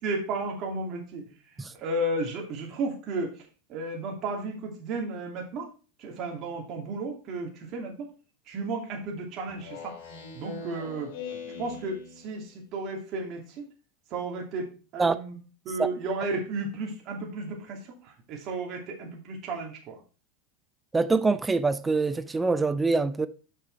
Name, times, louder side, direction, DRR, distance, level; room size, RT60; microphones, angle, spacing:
voice 1, 0.0-1.3 1.8-3.3 3.7-5.7 6.0-8.1 8.5-9.9 10.3-11.1 11.6-13.6 14.1-15.4 15.6-20.0, right 2 dB, 45° right, 2.5 m, -33 dB
Speech synthesizer, 9.5-12.5, left 5 dB, 75° left, 3.2 m, -41 dB
voice 2, 20.9-23.3, right 3 dB, 15° right, 0.5 m, -24 dB
6.6 x 6.5 x 4.6 m
hypercardioid pair, 105°, 0 cm